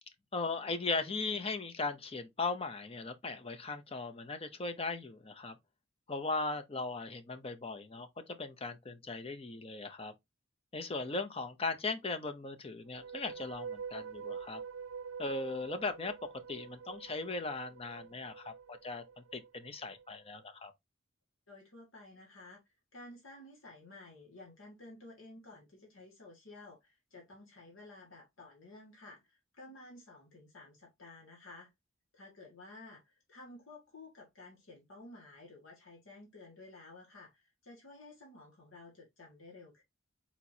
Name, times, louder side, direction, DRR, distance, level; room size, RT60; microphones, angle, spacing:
voice 1, 0.3-5.6 6.1-10.1 10.7-14.6 15.2-16.1 16.5-19.0 19.3-20.7, left 3 dB, 30° left, 0.6 m, -38 dB
sound 1, 12.8-20.1, right 6 dB, 90° right, 0.5 m, -46 dB
voice 2, 21.5-22.6 22.9-31.7 32.1-39.8, left 2 dB, 80° left, 1.8 m, -53 dB
4.4 x 4.3 x 2.7 m
head